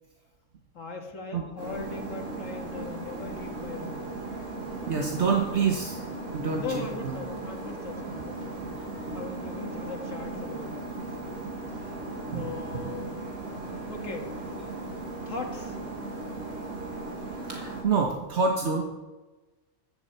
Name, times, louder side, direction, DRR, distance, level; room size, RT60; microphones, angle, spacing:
voice 1, 0.7-4.1 4.6-5.0 6.6-8.8 9.1-11.4 11.8-11.9 12.3-13.2 13.9-14.3 15.3-15.8, left 4 dB, 85° left, 2 dB, 2.2 m, -39 dB
sound 1, 1.6-17.8, right 2 dB, 90° right, 5.2 m, -37 dB
voice 2, 4.9-7.2 9.1-9.2 12.3-12.5 17.5-18.8, right 5 dB, 60° right, 1 dB, 1.4 m, -27 dB
14.0 x 10.5 x 4.6 m, 1.2 s
omnidirectional pair, 1.3 m